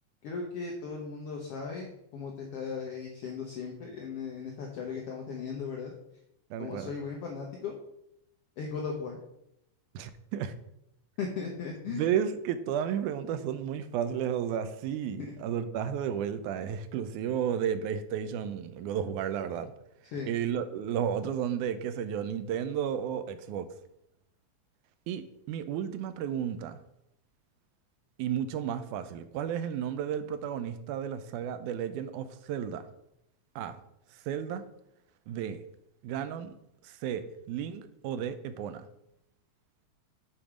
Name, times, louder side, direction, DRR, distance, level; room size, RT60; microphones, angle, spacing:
voice 1, 0.2-5.9 6.6-7.8 8.6-9.2 11.2-12.1 15.2-15.3 20.1-20.3, left 5 dB, 70° left, 0 dB, 1.5 m, -37 dB
voice 2, 6.5-6.9 9.9-10.5 11.9-19.7 20.3-23.7 25.1-26.8 28.2-32.9 33.6-33.8 34.3-34.6 35.3-35.6 36.0-36.5 36.8-38.9, right 9 dB, 80° right, 11 dB, 2.0 m, -33 dB
7.3 x 4.6 x 4.9 m, 0.80 s
omnidirectional pair, 3.6 m